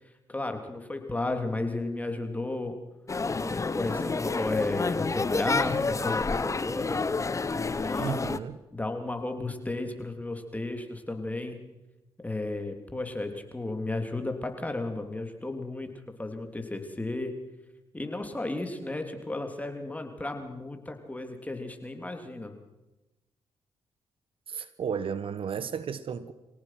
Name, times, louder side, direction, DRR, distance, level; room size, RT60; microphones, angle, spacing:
voice 1, 0.3-2.8 3.3-7.0 7.5-8.1 8.7-11.6 12.2-15.9 16.2-17.3 17.9-22.5, left 2 dB, 15° left, 3.3 m, -33 dB
sound 1, 3.1-8.4, left 4 dB, 30° left, 1.0 m, -29 dB
voice 2, 8.0-8.6 24.5-26.3, right 7 dB, 60° right, 1.2 m, -33 dB
24.5 x 18.0 x 6.0 m
supercardioid pair, 60°, 10 cm